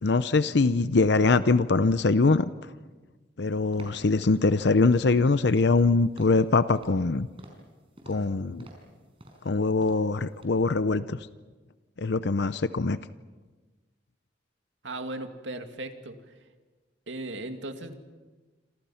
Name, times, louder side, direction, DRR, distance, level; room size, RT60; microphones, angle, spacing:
voice 1, 0.0-2.5 3.4-7.3 8.1-8.7 9.4-11.3 12.0-13.0, left 3 dB, 65° left, 13 dB, 0.7 m, -23 dB
sound 1, 3.7-4.1 4.3-4.6 5.0-5.3 5.5-5.9 6.2-6.5 6.8-7.1 7.4-7.7 8.0-8.3 8.6-8.9 9.2-9.5 9.8-10.1 10.4-10.5, right 1 dB, 30° right, 5.1 m, -49 dB
voice 2, 14.8-16.3 17.1-17.9, right 2 dB, 85° right, 6 dB, 2.3 m, -37 dB
28.0 x 27.0 x 5.8 m, 1.3 s
head